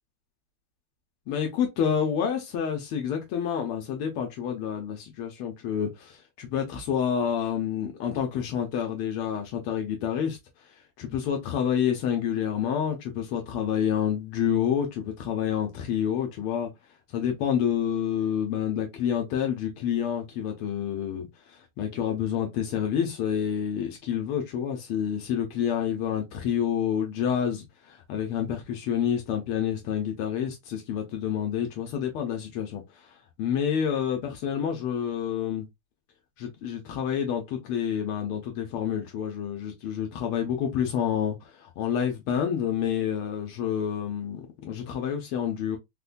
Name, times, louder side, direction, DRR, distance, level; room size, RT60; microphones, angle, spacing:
voice 1, 1.3-10.4 11.0-16.7 17.1-33.1 33.4-35.7 36.4-45.8, left 8 dB, 80° left, 1.6 m, -28 dB
4.2 x 2.2 x 2.4 m
omnidirectional pair, 2.4 m